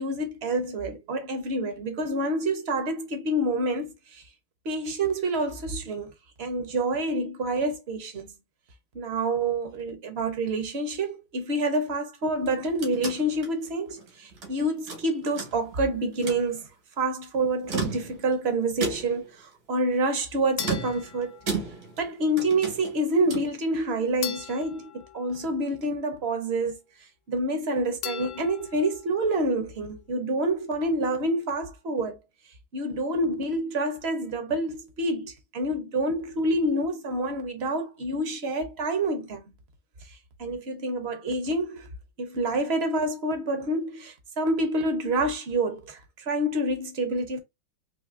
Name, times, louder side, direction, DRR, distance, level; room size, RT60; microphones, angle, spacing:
voice 1, 0.0-4.2 4.6-6.1 6.4-8.3 8.9-16.6 17.0-21.4 22.0-26.8 27.3-32.2 32.7-39.4 40.4-41.9 42.2-47.4, right 1 dB, 50° right, 0.8 m, -27 dB
sound 1, 12.3-14.5 14.9-15.8 16.1-16.5 17.5-18.4 18.8-19.3 20.6-22.1 22.4-23.6, right 4 dB, 75° right, 2.2 m, -34 dB
sound 2, 20.6-22.1 24.2-26.1 28.0-29.2, left 10 dB, 85° left, 0.7 m, -39 dB
4.1 x 2.7 x 2.5 m
omnidirectional pair, 2.1 m